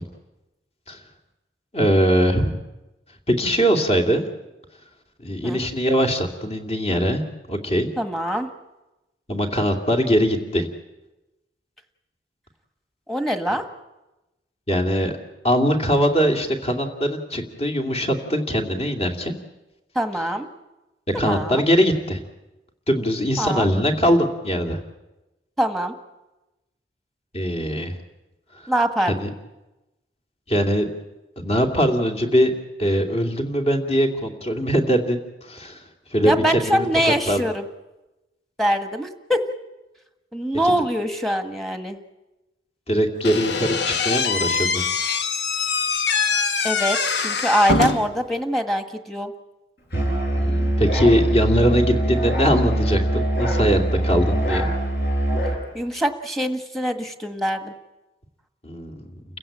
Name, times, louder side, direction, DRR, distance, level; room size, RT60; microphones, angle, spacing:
voice 1, 1.7-2.6 3.3-4.2 5.2-7.2 7.5-7.9 9.3-10.7 14.7-15.1 15.4-19.3 21.2-22.2 22.9-24.8 27.3-28.0 29.2-29.3 30.5-30.9 31.4-32.5 32.8-35.2 35.4-35.8 36.1-37.4 40.6-40.8 42.9-44.8 50.4-54.7 58.6-59.1, equal, 35° left, 3 dB, 2.6 m, -21 dB
voice 2, 8.0-8.5 13.1-13.6 19.9-20.5 21.1-21.7 23.4-23.7 25.6-25.9 28.7-29.1 36.2-37.6 38.6-39.4 40.3-42.0 46.6-49.3 55.7-57.7, equal, ahead, 6 dB, 1.6 m, -23 dB
Slam / Squeak, 43.2-48.2, left 4 dB, 75° left, 1.4 m, -23 dB
Musical instrument, 49.9-55.6, right 1 dB, 55° left, 7.0 m, -22 dB
29.5 x 15.5 x 8.8 m, 1.0 s
head